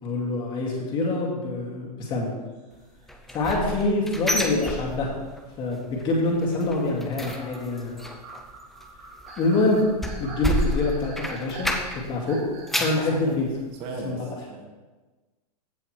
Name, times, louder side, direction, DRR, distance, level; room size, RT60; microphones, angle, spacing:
voice 1, 0.0-2.3 3.3-5.1 5.6-8.0 9.4-9.8 10.2-11.7 12.0-12.4 12.8-13.5 14.0-14.2, left 2 dB, 25° left, -2 dB, 2.2 m, -25 dB
sound 1, 2.4-4.7 5.2-6.4 7.0-13.3, right 4 dB, 45° right, 1.8 m, -45 dB
sound 2, 3.1-5.4 5.7-6.1 6.4-12.2 12.5-13.1 13.6-13.7 14.1-14.2, equal, ahead, 0.4 m, -30 dB
voice 2, 13.0-13.4 13.7-14.7, right 2 dB, 30° right, 2 dB, 1.7 m, -35 dB
15.5 x 5.7 x 3.2 m, 1.2 s
hypercardioid pair, 150°, 20 cm